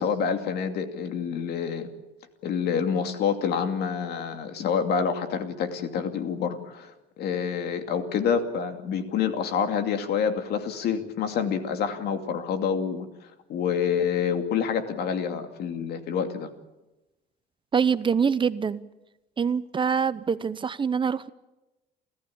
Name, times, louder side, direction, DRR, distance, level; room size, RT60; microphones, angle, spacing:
voice 1, 0.0-1.9 2.4-16.5, left 7 dB, 70° left, 7 dB, 2.6 m, -27 dB
voice 2, 17.7-18.8 19.4-21.3, right 6 dB, 30° right, 15 dB, 0.7 m, -25 dB
28.5 x 14.5 x 8.7 m, 1.0 s
cardioid pair, 110°, 17 cm